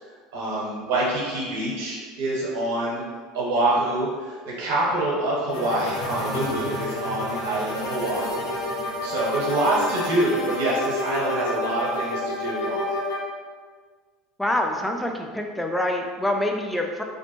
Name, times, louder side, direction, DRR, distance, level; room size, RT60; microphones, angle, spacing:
voice 1, 0.0-3.0 3.3-8.5 9.0-13.0, right 1 dB, 75° right, -6 dB, 1.0 m, -26 dB
sound 1, 5.5-13.2, left 1 dB, 75° left, 0.9 m, -29 dB
voice 2, 14.4-17.0, left 1 dB, 5° left, 2 dB, 0.4 m, -26 dB
2.6 x 2.1 x 2.9 m, 1.5 s
hypercardioid pair, 85°, 0 cm